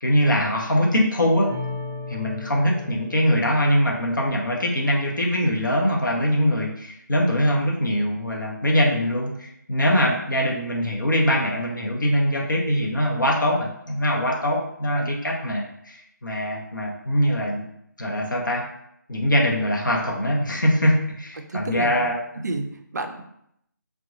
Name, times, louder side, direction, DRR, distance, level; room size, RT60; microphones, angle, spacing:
voice 1, 0.0-1.5 2.1-17.6 18.0-18.6 19.1-22.4, equal, 70° left, -1 dB, 0.8 m, -22 dB
sound 1, 1.5-4.9, left 3 dB, 15° right, 0.8 m, -37 dB
voice 2, 21.4-22.1 22.4-23.2, right 3 dB, 55° right, 5 dB, 0.4 m, -30 dB
2.8 x 2.2 x 2.5 m, 0.74 s
figure-of-eight pair, 155°, 11 cm